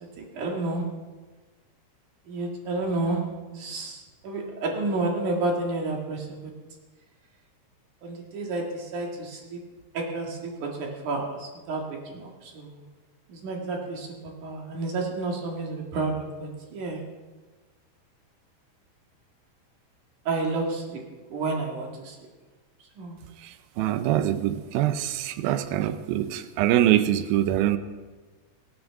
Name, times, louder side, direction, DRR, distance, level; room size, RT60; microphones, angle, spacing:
voice 1, 0.3-0.8 2.3-3.2 3.5-6.4 8.0-9.6 9.9-12.7 13.3-14.1 14.4-17.0 20.3-21.0 21.3-22.2 23.0-23.2, right 2 dB, 55° right, 0 dB, 3.0 m, -30 dB
voice 2, 23.4-27.8, right 12 dB, 80° right, 11 dB, 2.2 m, -24 dB
24.0 x 9.8 x 3.7 m, 1.3 s
omnidirectional pair, 4.9 m